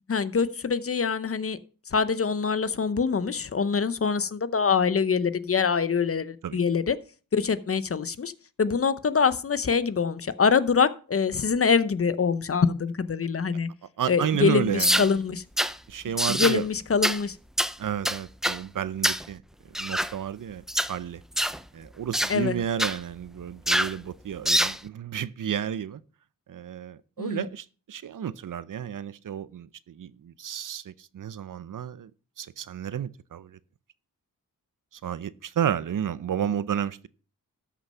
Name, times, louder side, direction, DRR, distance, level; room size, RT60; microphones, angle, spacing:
voice 1, 0.1-1.6 1.9-7.0 7.3-8.3 8.6-13.7 14.1-15.4 16.3-17.4 22.3-22.6 27.2-27.5, left 5 dB, 40° left, 0.7 m, -24 dB
voice 2, 14.0-15.1 15.9-16.7 17.8-19.4 19.8-21.2 21.7-26.0 26.5-32.1 32.4-33.6 35.0-37.1, right 9 dB, 60° right, 0.7 m, -31 dB
sound 1, 14.8-15.1 15.6-15.7 16.2-16.6 17.0-17.2 17.6-17.7 18.1-18.6 19.0-19.3 19.8-20.1 20.7-20.9 21.4-21.6 22.1-22.4 22.8-23.0 23.7-24.0 24.5-24.8, equal, ahead, 0.5 m, -25 dB
13.0 x 6.3 x 5.5 m
wide cardioid pair, 100°, 35 cm